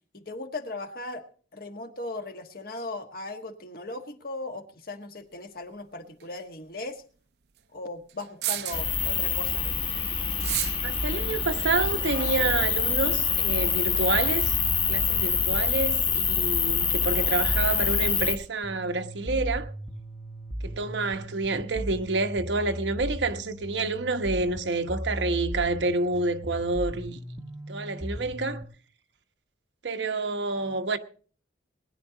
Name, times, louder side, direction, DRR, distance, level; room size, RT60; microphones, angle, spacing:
voice 1, 0.1-1.2 1.5-7.0 7.7-9.7, left 2 dB, 55° left, 1.4 m, -38 dB
sound 1, 6.2-6.3 8.2-9.0 10.3-10.9, right 13 dB, 65° right, 0.6 m, -30 dB
sound 2, 8.7-18.4, left 5 dB, 30° left, 1.2 m, -26 dB
voice 2, 10.8-14.5 14.9-19.7 20.6-27.2 27.7-28.6 29.8-31.0, right 3 dB, 90° right, 1.1 m, -28 dB
sound 3, 18.6-28.6, equal, 15° right, 0.8 m, -37 dB
20.0 x 10.5 x 3.9 m
head